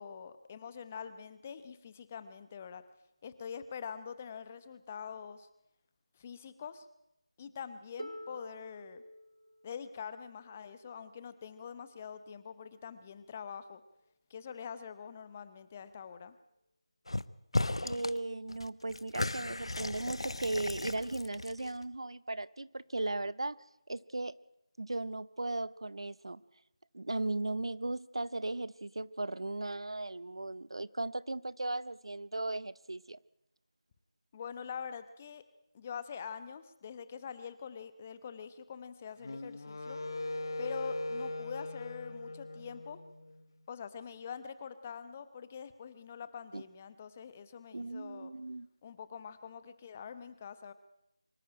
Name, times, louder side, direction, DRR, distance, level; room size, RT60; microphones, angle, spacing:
voice 1, 0.0-2.8 3.2-5.5 6.1-6.9 7.4-9.0 9.6-13.8 14.3-16.3 34.3-35.4 35.7-40.0 40.6-43.0 43.7-48.3 48.8-50.7, left 7 dB, 15° left, 0.9 m, -44 dB
Harp, 8.0-13.8 14.8-14.9, equal, 85° right, 1.3 m, -51 dB
sound 1, 17.1-17.3 17.5-18.2 18.5-21.8, left 2 dB, 65° left, 0.9 m, -35 dB
voice 2, 17.8-23.6 23.9-24.4 24.8-26.4 26.9-33.2 46.5-46.6 47.7-48.7, right 2 dB, 60° right, 0.7 m, -37 dB
Wind instrument woodwind instrument, 39.2-43.4, left 2 dB, 45° left, 1.6 m, -40 dB
24.5 x 14.0 x 8.9 m
figure-of-eight pair, 165°, 3 cm